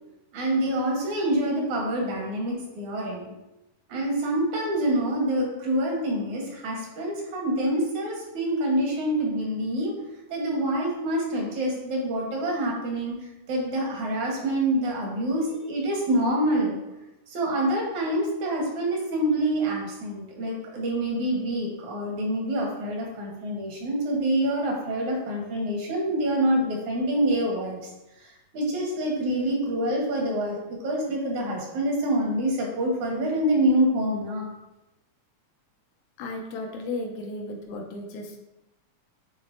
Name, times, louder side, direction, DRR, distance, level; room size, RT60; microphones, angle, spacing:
voice 1, 0.3-3.3 3.9-9.9 10.3-13.2 13.5-16.8 17.3-27.9 28.2-28.3 28.5-34.5, right 1 dB, 70° right, -1 dB, 2.7 m, -26 dB
voice 2, 36.2-38.5, left 2 dB, 80° left, 1 dB, 2.2 m, -35 dB
9.5 x 4.0 x 2.6 m, 0.95 s
omnidirectional pair, 3.5 m